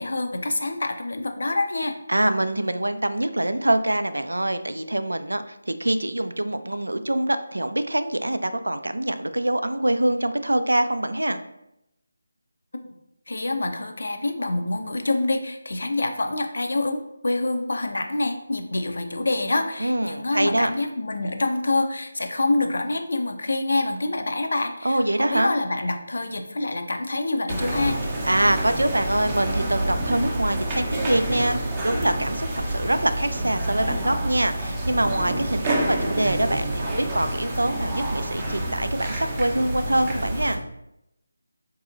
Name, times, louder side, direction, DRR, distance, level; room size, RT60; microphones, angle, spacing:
voice 1, 0.0-1.9 13.3-28.0, left 2 dB, 65° left, 6 dB, 0.5 m, -26 dB
voice 2, 2.1-11.4 19.8-20.7 24.8-25.5 28.2-40.6, right 1 dB, 80° right, 10 dB, 0.3 m, -24 dB
sound 1, 27.5-40.6, right 1 dB, 15° right, 0.6 m, -28 dB
4.1 x 2.6 x 2.5 m, 0.84 s
figure-of-eight pair, 160°, 0 cm